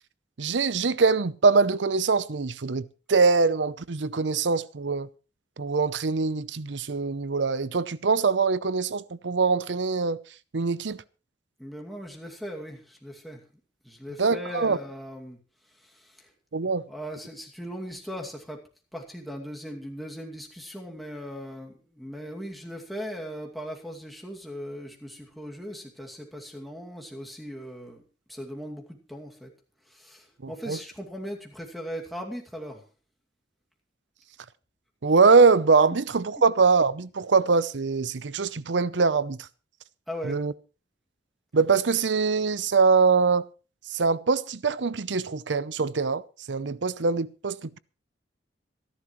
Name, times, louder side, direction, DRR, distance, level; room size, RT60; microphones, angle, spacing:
voice 1, 0.4-5.1 5.6-10.2 10.5-11.0 14.2-14.8 16.5-16.9 30.4-30.8 35.0-39.5 40.2-40.5 41.5-43.5 43.9-47.8, right 4 dB, 90° right, 0.7 m, -23 dB
voice 2, 11.6-13.4 13.8-15.4 15.7-16.3 16.9-18.6 18.9-28.0 28.3-29.5 29.9-32.8 40.1-40.4, equal, ahead, 2.4 m, -39 dB
26.0 x 11.0 x 3.2 m
head